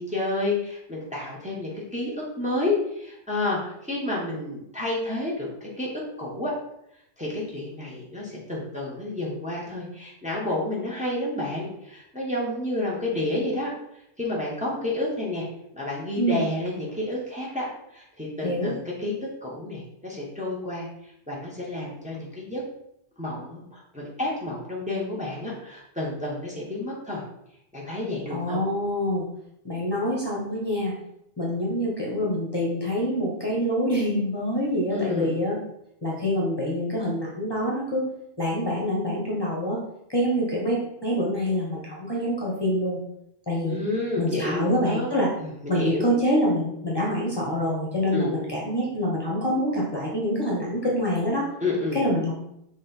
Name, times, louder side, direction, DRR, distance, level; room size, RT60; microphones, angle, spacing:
voice 1, 0.0-6.5 7.2-13.7 14.2-15.5 15.7-17.6 17.9-19.1 19.4-20.9 21.3-22.6 23.2-27.2 27.7-28.6 34.9-35.3 43.6-45.1 45.4-46.1 48.1-48.3 51.6-52.0, left 2 dB, 5° right, -5 dB, 1.4 m, -30 dB
voice 2, 18.4-18.7 28.3-29.3 29.6-30.9 31.4-35.6 36.0-38.1 38.4-39.8 40.1-43.0 43.5-43.8 44.2-45.3 45.7-51.5 51.9-52.4, equal, 25° left, -4 dB, 1.3 m, -26 dB
6.1 x 3.5 x 4.5 m, 0.78 s
omnidirectional pair, 1.1 m